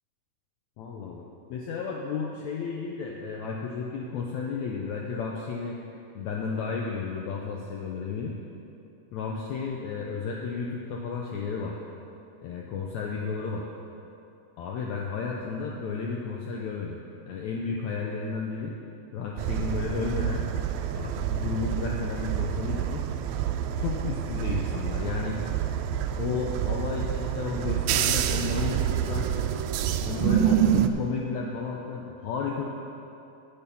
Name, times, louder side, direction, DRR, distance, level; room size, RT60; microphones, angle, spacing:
voice 1, 0.8-1.2 1.5-5.8 6.2-8.4 9.1-11.8 12.4-13.7 14.6-17.0 17.3-18.8 19.1-20.5 20.9-23.1 23.8-25.4 26.2-29.3 30.0-32.6, left 5 dB, 85° left, -1 dB, 1.6 m, -32 dB
sound 1, 19.4-30.9, right 10 dB, 85° right, 2.3 m, -27 dB
14.5 x 6.8 x 5.5 m, 2.8 s
omnidirectional pair, 4.2 m